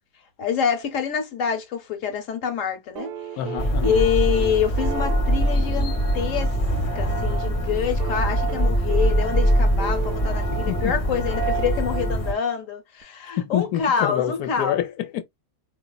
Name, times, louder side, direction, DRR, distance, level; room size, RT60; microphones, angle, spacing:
voice 1, 0.4-3.1 3.8-6.5 6.9-14.8, left 7 dB, 60° left, 1.2 m, -26 dB
sound 1, 3.0-7.0 8.0-11.6 13.0-13.1, right 9 dB, 75° right, 1.0 m, -36 dB
voice 2, 3.4-4.0 10.5-10.9 13.4-15.2, left 11 dB, 90° left, 1.2 m, -27 dB
sound 2, 3.6-12.3, equal, 30° left, 0.7 m, -23 dB
4.0 x 2.8 x 2.2 m
omnidirectional pair, 1.6 m